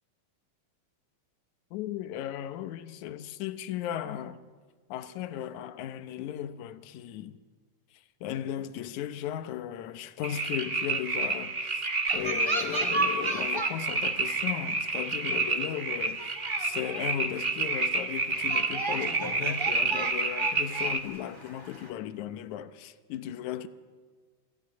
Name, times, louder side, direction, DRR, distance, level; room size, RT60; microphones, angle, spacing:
voice 1, 1.7-4.4 4.9-7.4 7.9-23.7, left 11 dB, 80° left, 2.3 m, -36 dB
sound 1, 10.2-21.0, right 3 dB, 40° right, 0.8 m, -29 dB
sound 2, 12.1-14.0 14.2-14.6 15.3-15.4 15.8-15.9 16.2-17.2 17.6-17.7 18.3-21.9, right 2 dB, 10° right, 1.5 m, -35 dB
25.5 x 15.5 x 9.3 m
omnidirectional pair, 3.4 m